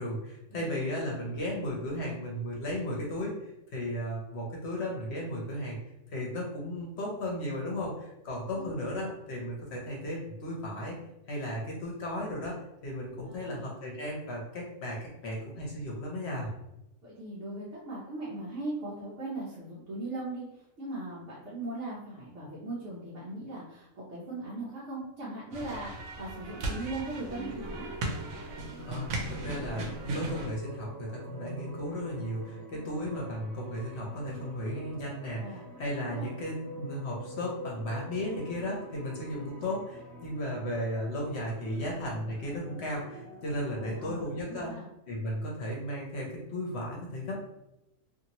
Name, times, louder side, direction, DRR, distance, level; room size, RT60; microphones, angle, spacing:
voice 1, 0.0-5.8 6.1-11.0 11.3-16.5 28.9-44.7 45.1-47.4, equal, 60° left, -2 dB, 0.9 m, -35 dB
voice 2, 13.3-13.7 17.0-27.8 35.4-35.6 36.0-36.3 43.7-44.9, right 2 dB, 65° right, -8 dB, 1.0 m, -39 dB
sound 1, 25.5-30.5, right 2 dB, 90° right, 1.1 m, -37 dB
sound 2, 27.2-44.4, equal, 10° left, 0.8 m, -46 dB
2.7 x 2.6 x 2.8 m, 0.88 s
omnidirectional pair, 1.4 m